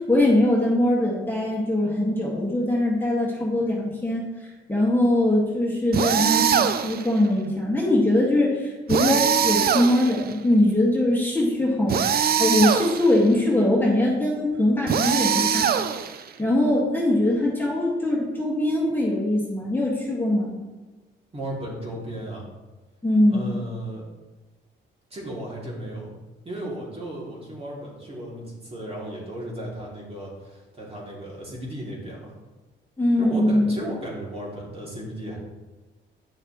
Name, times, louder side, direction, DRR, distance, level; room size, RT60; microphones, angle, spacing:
voice 1, 0.0-12.1 12.4-15.7 16.4-20.5 23.0-23.6 33.0-33.7, left 1 dB, 10° left, -4 dB, 1.8 m, -22 dB
sound 1, 5.9-7.1 8.9-10.3 11.9-13.2 14.9-16.3, right 8 dB, 50° right, 0.5 m, -22 dB
voice 2, 21.3-22.5 23.3-24.0 25.1-26.1 26.4-32.3 33.2-35.4, right 1 dB, 30° right, -4 dB, 2.7 m, -35 dB
9.3 x 6.4 x 3.1 m, 1.2 s
cardioid pair, 90°, 20 cm